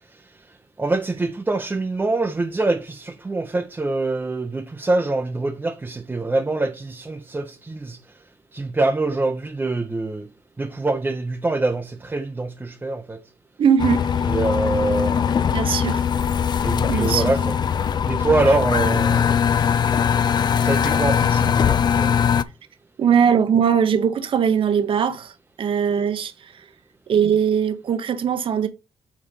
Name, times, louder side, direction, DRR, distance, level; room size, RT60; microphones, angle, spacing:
voice 1, 0.8-8.0 8.5-10.3 10.6-13.2 14.3-15.6 16.6-17.6 18.1-19.4 20.6-22.1, right 2 dB, 20° right, 0.7 m, -24 dB
voice 2, 13.6-14.2 15.5-16.1 16.9-17.3 23.0-26.7 27.1-28.7, right 7 dB, 55° right, 0.9 m, -20 dB
sound 1, 13.8-22.4, left 7 dB, 45° left, 0.4 m, -21 dB
5.0 x 4.1 x 5.4 m
cardioid pair, 95°, 10 cm